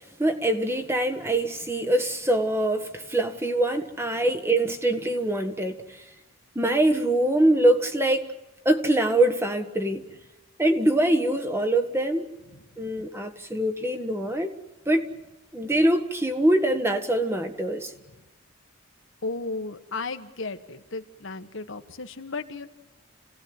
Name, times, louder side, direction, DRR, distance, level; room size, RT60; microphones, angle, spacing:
voice 1, 0.2-6.0 6.5-8.3 8.6-10.0 10.6-12.3 12.8-14.5 14.8-15.1 15.5-17.9, right 1 dB, 10° right, 1.4 m, -24 dB
voice 2, 19.2-22.7, left 3 dB, 70° left, 1.4 m, -34 dB
28.5 x 17.5 x 9.6 m
head